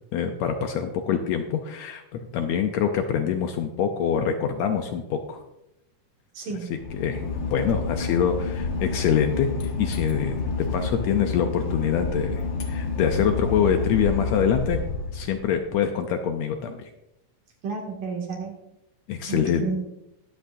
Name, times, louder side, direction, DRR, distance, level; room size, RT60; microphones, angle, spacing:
voice 1, 0.1-2.0 2.3-5.4 6.9-9.5 9.8-10.4 10.7-14.8 15.1-16.9 19.1-19.7, left 8 dB, 75° left, 6 dB, 1.7 m, -25 dB
voice 2, 6.3-6.7 17.6-18.5 19.3-19.7, right 4 dB, 85° right, -1 dB, 3.9 m, -31 dB
Boat Water vehicle / Engine, 6.7-15.7, left 4 dB, 60° left, 1.2 m, -29 dB
20.5 x 7.9 x 2.7 m, 0.89 s
omnidirectional pair, 3.7 m